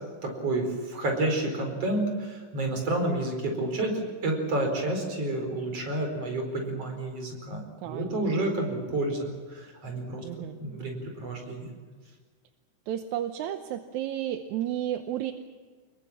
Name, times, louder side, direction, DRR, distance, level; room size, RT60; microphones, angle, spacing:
voice 1, 0.2-10.2 10.6-11.6, right 2 dB, 50° right, 3 dB, 5.6 m, -30 dB
voice 2, 7.8-8.4 10.2-10.6 12.9-15.3, right 11 dB, 75° right, 8 dB, 2.2 m, -32 dB
25.5 x 22.0 x 7.4 m, 1.5 s
omnidirectional pair, 3.6 m